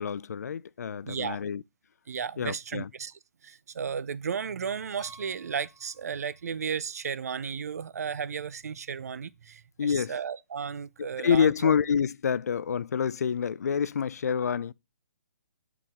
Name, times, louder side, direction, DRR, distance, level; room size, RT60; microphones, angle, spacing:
voice 1, 0.0-1.6 2.4-2.9 9.8-10.1 11.0-14.7, left 7 dB, 75° left, 0.4 m, -27 dB
voice 2, 1.0-1.4 2.1-11.7, right 6 dB, 70° right, 0.6 m, -34 dB
Piano, 5.0-6.6 6.8-7.0 7.6-7.7 7.9-8.0 10.1-10.2, right 1 dB, ahead, 1.3 m, -55 dB
9.7 x 4.7 x 3.7 m
hypercardioid pair, 150°, 9 cm